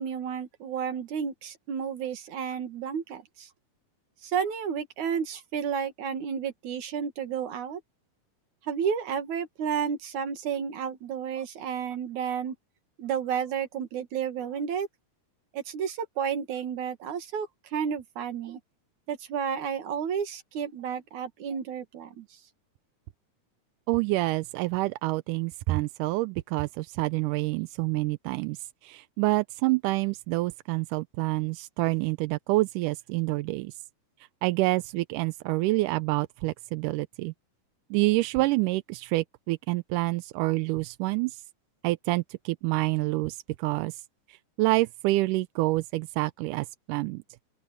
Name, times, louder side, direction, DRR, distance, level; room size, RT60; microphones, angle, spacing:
voice 1, 0.0-3.5 4.2-7.8 8.7-12.5 13.0-14.9 15.5-18.6 19.1-22.3, right 7 dB, 70° right, 3.2 m, -31 dB
voice 2, 23.9-33.8 34.4-37.3 37.9-41.4 41.8-44.0 44.3-47.2, right 20 dB, 85° right, 2.1 m, -27 dB
open air
omnidirectional pair, 3.7 m